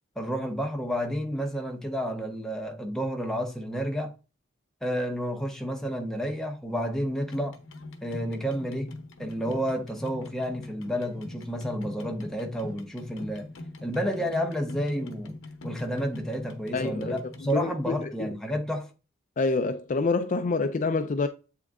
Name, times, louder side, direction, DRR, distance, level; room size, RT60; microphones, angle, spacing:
voice 1, 0.2-4.2 4.8-7.6 8.0-13.5 13.8-15.4 15.6-18.9, equal, ahead, 0.8 m, -30 dB
sound 1, 7.2-17.5, left 2 dB, 75° left, 1.0 m, -42 dB
voice 2, 16.7-18.3 19.4-21.3, left 3 dB, 35° left, 0.4 m, -27 dB
7.8 x 3.6 x 3.6 m
head